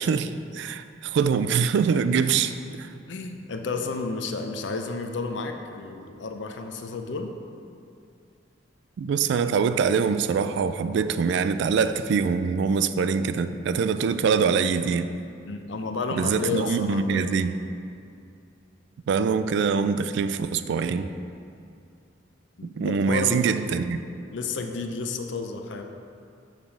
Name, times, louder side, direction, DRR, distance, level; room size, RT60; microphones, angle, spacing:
voice 1, 0.0-2.5 9.0-15.1 16.2-17.5 19.1-21.1 22.8-24.0, right 6 dB, 65° right, 11 dB, 0.3 m, -24 dB
voice 2, 3.1-7.3 15.5-17.2 22.6-23.5 24.3-25.8, left 4 dB, 70° left, 5 dB, 0.5 m, -31 dB
7.3 x 3.4 x 5.9 m, 2.5 s
head